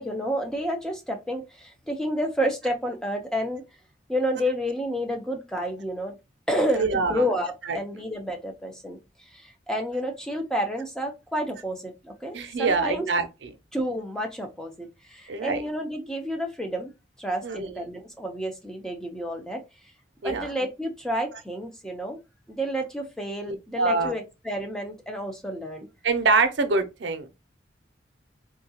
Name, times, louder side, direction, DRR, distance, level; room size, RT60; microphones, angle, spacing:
voice 1, 0.0-3.6 4.1-6.1 6.5-9.0 9.3-13.1 13.7-16.9 17.2-19.6 20.2-22.2 22.5-25.9, equal, 5° left, 0.5 m, -30 dB
voice 2, 6.7-7.2 7.7-7.8 12.3-13.5 15.3-15.6 17.4-17.8 20.2-20.5 23.4-24.1 26.0-27.3, right 4 dB, 85° right, 0.6 m, -25 dB
3.6 x 2.3 x 2.8 m
head